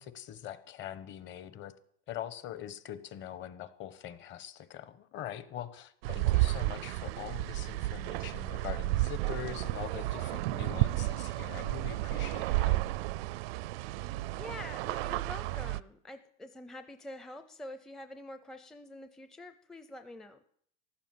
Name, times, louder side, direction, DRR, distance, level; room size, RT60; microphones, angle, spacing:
voice 1, 0.0-1.7 2.1-12.8, left 11 dB, 40° left, 13 dB, 1.2 m, -43 dB
sound 1, 6.0-15.8, right 18 dB, 90° right, 0.6 m, -32 dB
voice 2, 14.3-20.4, left 1 dB, ahead, 8 dB, 0.5 m, -46 dB
14.5 x 12.0 x 7.6 m, 0.65 s
cardioid pair, 150°, 29 cm